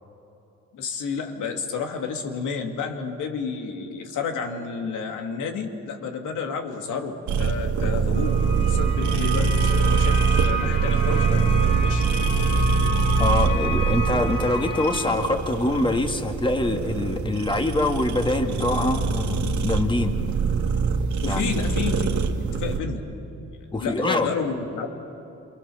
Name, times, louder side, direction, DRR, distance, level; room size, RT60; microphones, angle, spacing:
voice 1, 0.7-8.4 8.6-12.0 21.2-23.1 23.7-24.9, left 5 dB, 80° left, 4 dB, 2.7 m, -31 dB
sound 1, 7.3-22.8, right 4 dB, 70° right, 2.0 m, -23 dB
sound 2, 8.1-15.1, right 2 dB, 45° left, 4.7 m, -31 dB
voice 2, 13.2-20.2 21.2-21.7 23.7-24.3, left 2 dB, 15° left, 5 dB, 1.9 m, -24 dB
28.5 x 24.0 x 7.1 m, 2.9 s
cardioid pair, 90°, 30 cm